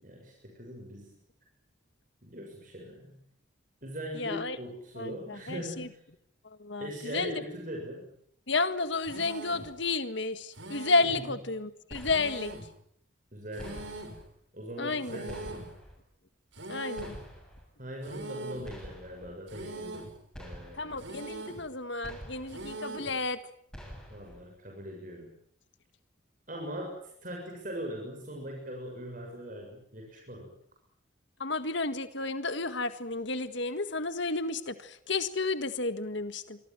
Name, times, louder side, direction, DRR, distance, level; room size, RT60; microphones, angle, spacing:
voice 1, 0.0-1.1 2.2-3.2 3.8-6.0 6.8-8.1 11.0-11.3 13.3-14.0 14.5-15.7 17.8-20.1 20.4-21.0 24.1-25.3 26.5-30.5, equal, 40° right, 1 dB, 7.1 m, -41 dB
voice 2, 4.1-4.6 5.0-5.9 6.6-7.4 8.5-12.5 14.8-15.2 16.7-17.2 20.7-23.4 31.4-36.6, left 3 dB, 65° left, 11 dB, 1.8 m, -32 dB
sound 1, 9.0-9.7 10.5-11.2 12.0-12.7 13.5-14.2 15.0-15.7 16.5-17.2 18.0-18.7 19.5-20.2 21.0-21.7 22.5-23.2, right 2 dB, 70° right, 6.6 m, -42 dB
sound 2, 11.9-12.6 13.6-14.3 15.3-16.0 17.0-17.7 18.6-19.3 20.3-21.0 22.0-22.7 23.7-24.4, equal, 5° left, 7.3 m, -46 dB
26.5 x 24.5 x 7.7 m, 0.69 s
head